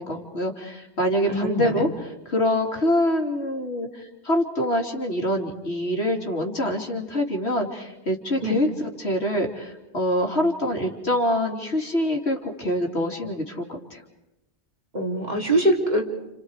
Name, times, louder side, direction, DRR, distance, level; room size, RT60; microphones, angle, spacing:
voice 1, 0.0-1.9 2.3-14.0, left 1 dB, 75° left, 1 dB, 3.4 m, -25 dB
voice 2, 1.3-1.8 8.4-8.6 14.9-16.0, right 1 dB, 40° right, 0 dB, 3.8 m, -23 dB
30.0 x 30.0 x 4.9 m, 0.96 s
omnidirectional pair, 1.1 m